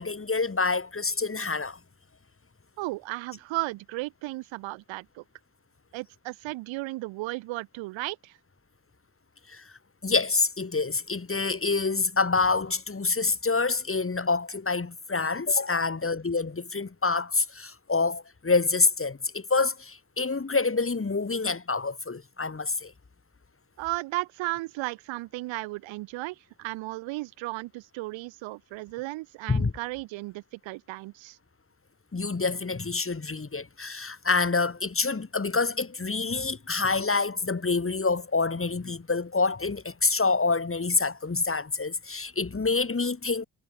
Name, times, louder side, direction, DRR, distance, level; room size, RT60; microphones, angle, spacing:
voice 1, 0.0-1.8 9.5-9.6 10.0-22.9 29.5-29.7 32.1-43.5, left 4 dB, 25° left, 6.1 m, -27 dB
voice 2, 2.8-5.2 5.9-8.4 23.8-31.4, right 20 dB, 75° right, 1.9 m, -35 dB
hypercardioid pair, 50°, 47 cm